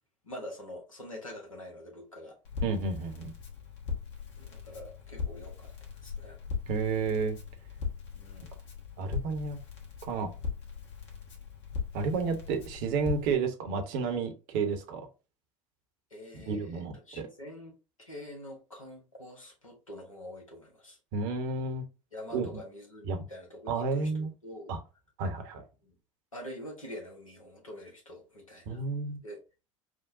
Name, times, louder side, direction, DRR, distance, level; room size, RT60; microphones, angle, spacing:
voice 1, 0.2-2.4 4.4-5.7 6.0-6.4 8.1-8.5 16.1-17.7 18.0-21.0 22.1-24.7 25.8-25.9 26.3-28.8 29.2-29.4, left 1 dB, 85° left, 1.2 m, -45 dB
Crackle, 2.4-13.3, left 6 dB, 60° left, 1.3 m, -39 dB
voice 2, 2.6-3.3 6.7-7.4 9.0-9.6 10.0-10.3 11.9-15.0 16.5-17.2 21.1-21.8 22.3-22.5 23.1-23.3 23.7-24.3 24.7-24.8 25.2-25.6 28.7-29.2, right 4 dB, 50° right, 1.0 m, -31 dB
6.2 x 2.2 x 2.6 m
figure-of-eight pair, 75°, 17 cm